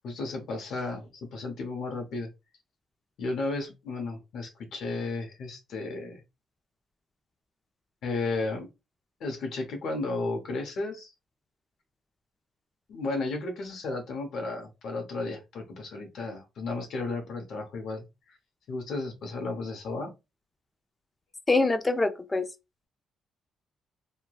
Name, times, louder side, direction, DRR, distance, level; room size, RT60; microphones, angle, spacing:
voice 1, 0.0-2.3 3.2-6.2 8.0-8.7 9.2-11.1 12.9-18.0 18.7-20.1, left 3 dB, 70° left, 0.7 m, -33 dB
voice 2, 21.5-22.5, left 3 dB, 20° left, 0.5 m, -24 dB
3.1 x 2.2 x 2.2 m
cardioid pair, 90°, 0 cm